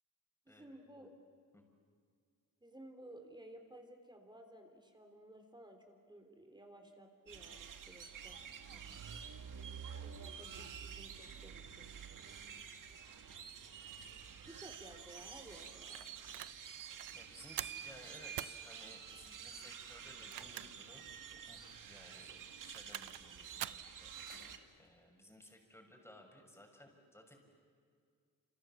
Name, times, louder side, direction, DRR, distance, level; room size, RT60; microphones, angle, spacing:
voice 1, 0.5-1.1 2.6-8.4 10.0-11.9 14.4-16.0, right 1 dB, 15° right, 4 dB, 3.6 m, -56 dB
sound 1, 7.3-24.6, right 7 dB, 65° right, 1.9 m, -49 dB
sound 2, 16.0-16.6 17.0-17.2 17.6-17.9 18.4-18.6 20.1-20.9 21.3-21.4 22.5-23.3 23.6-23.9, right 13 dB, 80° right, 0.6 m, -44 dB
sound 3, 16.6-21.5 21.8-23.0 23.4-23.6 24.0-25.3, left 7 dB, 85° left, 2.6 m, -70 dB
voice 2, 17.1-21.0 21.4-24.1 24.8-27.3, left 1 dB, 5° left, 2 dB, 6.2 m, -58 dB
28.5 x 28.0 x 7.3 m, 2.1 s
cardioid pair, 95°, 34 cm